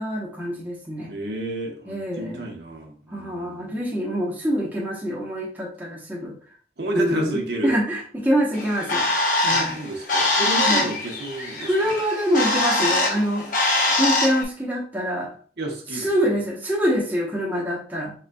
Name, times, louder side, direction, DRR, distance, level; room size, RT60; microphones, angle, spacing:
voice 1, 0.0-1.1 1.9-2.5 3.1-6.3 6.9-9.1 9.4-9.8 10.7-10.9 11.6-13.5 14.0-15.3 15.9-18.1, equal, 10° right, -4 dB, 0.9 m, -25 dB
voice 2, 1.1-3.8 6.8-7.8 9.4-11.9 15.6-16.1, right 2 dB, 75° right, 0 dB, 1.0 m, -31 dB
Bird, 8.5-14.4, left 2 dB, 45° left, 0.9 m, -23 dB
4.2 x 3.9 x 2.3 m, 0.42 s
head